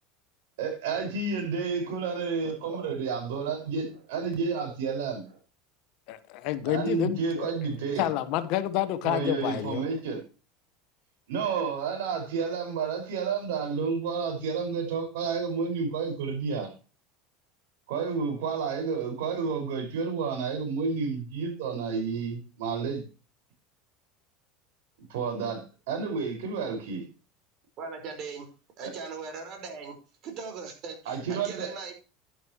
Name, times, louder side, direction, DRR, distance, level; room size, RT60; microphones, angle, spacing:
voice 1, 0.6-5.4 6.7-8.1 9.0-10.2 11.3-16.7 17.9-23.0 25.1-27.0 28.8-28.9 31.1-31.7, right 5 dB, 85° right, 5.6 m, -30 dB
voice 2, 6.1-7.5 8.0-9.8, left 13 dB, 65° left, 1.3 m, -29 dB
voice 3, 27.8-28.5 28.8-30.0 30.2-31.9, right 5 dB, 50° right, 4.9 m, -39 dB
11.5 x 10.5 x 3.1 m
supercardioid pair, 125°, 0 cm